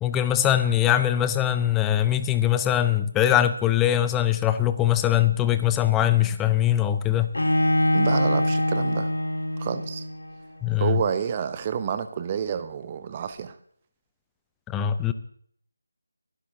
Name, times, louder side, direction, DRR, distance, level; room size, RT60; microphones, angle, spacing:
voice 1, 0.0-7.3 10.6-11.0 14.7-15.1, left 11 dB, 10° left, 12 dB, 0.5 m, -22 dB
Bowed string instrument, 7.3-10.3, left 1 dB, 70° left, 2.0 m, -23 dB
voice 2, 7.9-9.1 9.6-10.1 10.8-13.5, right 7 dB, 25° right, 11 dB, 0.7 m, -29 dB
24.0 x 11.5 x 2.7 m, 0.62 s
figure-of-eight pair, 160°, 0 cm